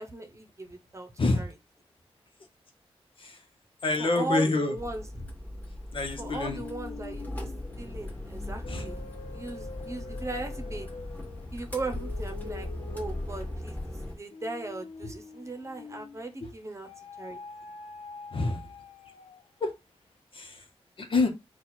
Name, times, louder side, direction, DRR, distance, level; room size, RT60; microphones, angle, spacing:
voice 1, 0.0-1.5 4.0-5.1 6.2-9.0 9.3-10.9 11.5-16.9 17.2-17.4, right 2 dB, 30° right, 0.9 m, -38 dB
voice 2, 3.8-4.7 5.9-6.6 8.7-8.8 18.3-18.7 19.6-19.7 20.3-20.6 21.0-21.3, left 3 dB, 60° left, 1.0 m, -27 dB
sound 1, 4.8-14.2, left 1 dB, 15° left, 1.4 m, -38 dB
sound 2, 6.1-16.3 16.8-19.6, left 4 dB, 90° left, 0.6 m, -46 dB
4.1 x 2.4 x 4.4 m
wide cardioid pair, 75°, 10 cm